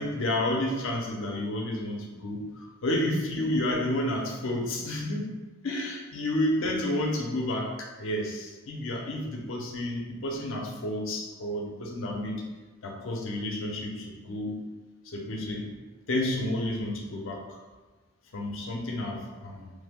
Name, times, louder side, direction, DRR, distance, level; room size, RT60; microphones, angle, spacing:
voice 1, 0.0-5.3 5.6-12.4 12.8-14.6 15.0-15.7 16.1-17.6 18.3-19.7, left 1 dB, 65° left, 0 dB, 0.6 m, -30 dB
3.2 x 2.1 x 3.5 m, 1.2 s
head